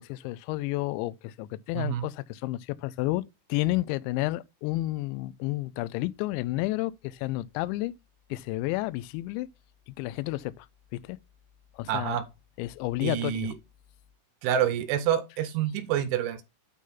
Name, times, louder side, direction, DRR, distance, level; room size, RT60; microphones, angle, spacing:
voice 1, 0.0-3.2 3.5-7.9 8.3-9.5 9.9-10.7 11.0-11.2 11.7-12.2 12.6-13.5, left 18 dB, 85° left, 2.6 m, -31 dB
voice 2, 11.9-12.2 13.0-13.5 14.4-16.4, right 10 dB, 80° right, 3.1 m, -27 dB
9.2 x 3.8 x 5.7 m
omnidirectional pair, 5.8 m